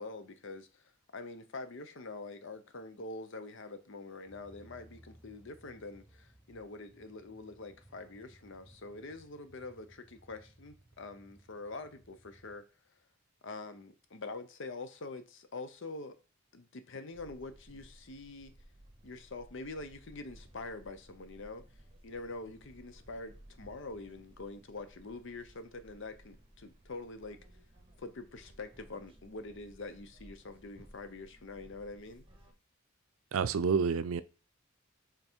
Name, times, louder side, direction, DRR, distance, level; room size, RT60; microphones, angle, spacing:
voice 1, 0.0-12.6 13.4-16.2 16.5-18.5 19.0-21.6 22.0-27.4 28.0-32.2, left 3 dB, 60° left, 0.7 m, -45 dB
sound 1, 4.3-12.6, right 1 dB, 5° right, 0.8 m, -61 dB
sound 2, 17.1-32.5, right 1 dB, 25° right, 1.1 m, -58 dB
voice 2, 33.3-34.2, right 5 dB, 75° right, 0.4 m, -29 dB
5.5 x 3.8 x 4.5 m
head